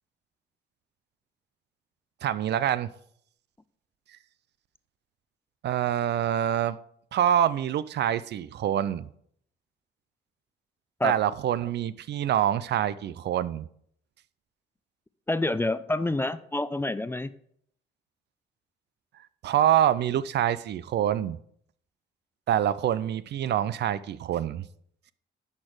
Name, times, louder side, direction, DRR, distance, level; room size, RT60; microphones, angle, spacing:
voice 1, 2.2-2.9 5.6-6.8 7.1-9.1 11.0-13.6 19.4-21.4 22.5-24.7, right 10 dB, 60° right, 0.4 m, -26 dB
voice 2, 15.3-17.3, left 2 dB, 10° left, 0.4 m, -27 dB
10.5 x 4.4 x 4.9 m
cardioid pair, 90°, 20 cm